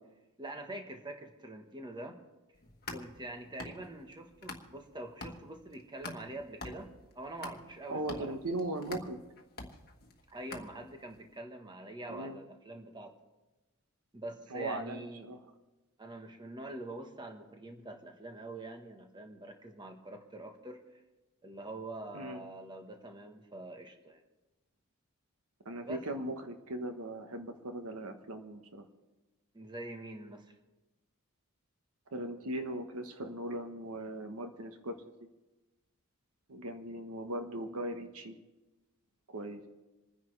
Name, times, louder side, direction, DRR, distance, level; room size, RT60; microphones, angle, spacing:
voice 1, 0.4-2.2 2.9-6.9 7.1-8.4 10.3-13.1 14.1-15.3 16.0-21.0 21.4-24.2 25.8-26.0 29.5-30.5, right 1 dB, 20° right, 4 dB, 1.2 m, -45 dB
sound 1, 2.5-4.9 5.2-11.1, left 2 dB, 45° left, 1.4 m, -46 dB
voice 2, 7.9-9.2 12.1-12.4 14.5-15.4 22.1-22.4 25.6-28.8 32.1-35.0 36.5-38.4 39.3-39.6, right 1 dB, 75° right, 6 dB, 1.2 m, -39 dB
27.5 x 10.0 x 3.3 m, 1.1 s
head